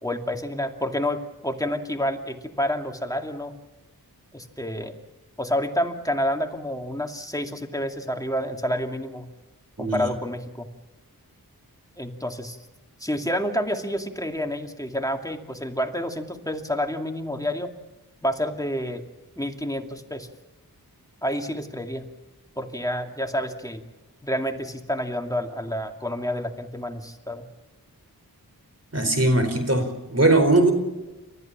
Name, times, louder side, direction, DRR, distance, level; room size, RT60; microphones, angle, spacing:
voice 1, 0.0-3.5 4.3-5.0 5.4-9.3 9.8-10.7 12.0-12.6 13.0-17.7 18.2-19.0 19.4-20.3 21.2-22.1 22.6-23.8 24.2-27.5, equal, 10° left, 4 dB, 2.4 m, -29 dB
voice 2, 28.9-30.7, right 2 dB, 40° right, 8 dB, 4.4 m, -20 dB
30.0 x 14.0 x 7.4 m, 1.1 s
wide cardioid pair, 45°, 37 cm